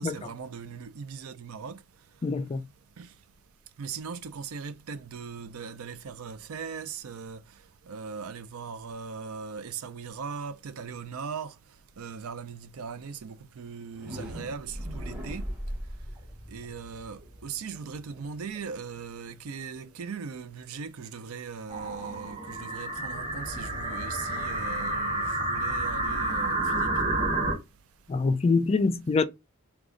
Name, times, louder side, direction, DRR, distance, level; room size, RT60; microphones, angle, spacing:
voice 1, 0.0-1.8 3.0-3.1 3.8-7.4 7.9-11.5 12.0-15.4 16.5-27.2, right 6 dB, 75° right, 0.5 m, -39 dB
voice 2, 2.2-2.6 28.1-29.2, left 4 dB, 30° left, 0.3 m, -25 dB
sound 1, 13.8-19.7, equal, 10° right, 1.7 m, -40 dB
sound 2, 21.7-27.5, right 2 dB, 30° right, 2.6 m, -30 dB
5.0 x 2.3 x 3.7 m
head